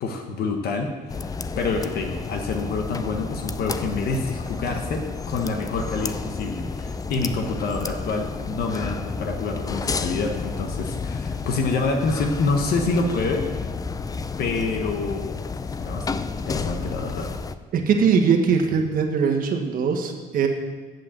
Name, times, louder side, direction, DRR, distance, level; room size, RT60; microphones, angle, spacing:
voice 1, 0.0-13.5 14.4-15.5 15.8-17.4, left 3 dB, 65° left, 3 dB, 1.3 m, -27 dB
sound 1, 1.1-17.6, left 4 dB, 20° left, 0.4 m, -31 dB
voice 2, 17.7-20.5, right 6 dB, 55° right, 3 dB, 1.5 m, -21 dB
7.7 x 7.6 x 7.5 m, 1.3 s
cardioid pair, 110°, 17 cm